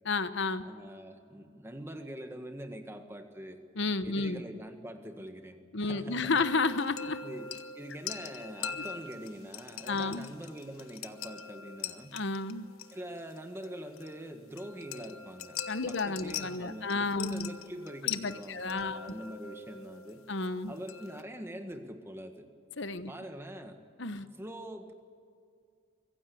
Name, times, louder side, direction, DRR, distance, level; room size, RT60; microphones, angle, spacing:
voice 1, 0.0-0.6 3.8-4.4 5.7-7.2 8.8-8.9 9.9-10.3 12.1-12.7 15.7-17.5 18.0-19.0 20.3-20.7 22.8-23.1 24.0-24.3, left 3 dB, 55° left, 12 dB, 1.0 m, -31 dB
voice 2, 0.6-3.6 4.0-6.4 7.2-12.2 12.9-15.6 15.9-20.2 20.7-22.5 23.1-23.8 24.2-24.9, equal, 10° right, 5 dB, 1.6 m, -44 dB
sound 1, 6.4-21.2, left 8 dB, 85° left, 1.0 m, -43 dB
23.5 x 15.5 x 8.5 m, 2.3 s
head